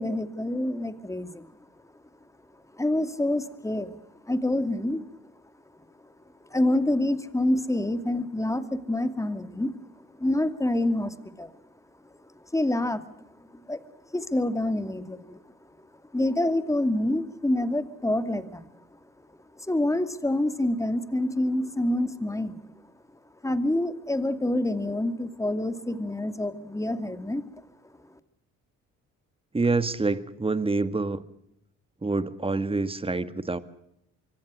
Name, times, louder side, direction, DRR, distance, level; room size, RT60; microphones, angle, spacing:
voice 1, 0.0-1.5 2.7-4.0 4.2-5.1 6.5-9.7 10.2-11.5 12.5-13.0 13.5-13.8 14.1-15.4 16.1-18.7 19.6-22.7 23.4-27.4, left 1 dB, 10° left, 10 dB, 2.5 m, -27 dB
voice 2, 29.5-31.2 32.0-33.6, right 3 dB, 20° right, 13 dB, 1.9 m, -26 dB
25.0 x 24.5 x 6.4 m, 0.77 s
cardioid pair, 90°, 30 cm